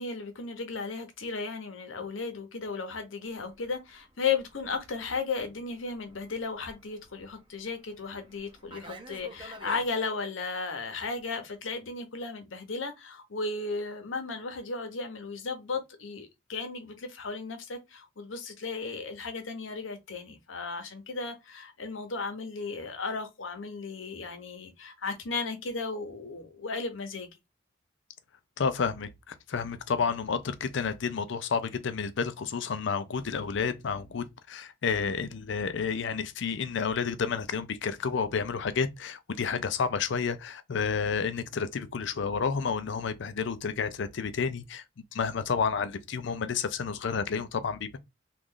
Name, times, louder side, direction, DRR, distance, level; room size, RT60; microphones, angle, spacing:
voice 1, 0.0-27.3, left 4 dB, 80° left, 0.9 m, -35 dB
Fixed-wing aircraft airplane, 3.4-9.9, right 2 dB, 25° right, 0.7 m, -51 dB
voice 2, 28.6-44.8 45.1-48.0, left 5 dB, 65° left, 0.5 m, -30 dB
3.1 x 2.4 x 3.7 m
head